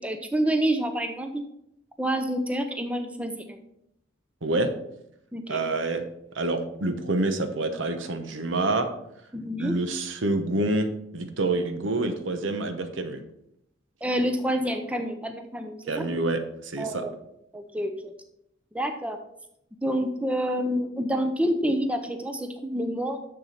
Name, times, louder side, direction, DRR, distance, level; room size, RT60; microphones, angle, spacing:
voice 1, 0.0-1.4 2.0-3.6 5.3-5.6 9.3-9.8 14.0-16.0 16.8-17.1 17.5-18.1 18.7-19.2 19.8-23.2, equal, 5° right, 6 dB, 0.5 m, -28 dB
voice 2, 4.4-4.7 5.5-6.0 6.3-8.9 9.6-13.2 15.9-17.0, right 2 dB, 80° right, 8 dB, 0.9 m, -27 dB
6.9 x 6.8 x 4.3 m, 0.79 s
head